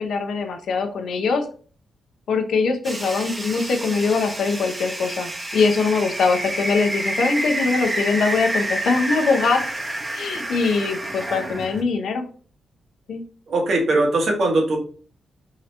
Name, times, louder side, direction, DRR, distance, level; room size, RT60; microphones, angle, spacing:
voice 1, 0.0-1.5 2.3-9.7 10.1-12.3 13.1-13.2, left 4 dB, 75° left, 5 dB, 0.7 m, -22 dB
sound 1, 2.8-11.8, right 1 dB, 25° right, 0.8 m, -28 dB
voice 2, 13.5-14.8, right 2 dB, 60° right, 0 dB, 1.3 m, -20 dB
3.8 x 2.9 x 3.2 m, 0.43 s
cardioid pair, 95°, 0 cm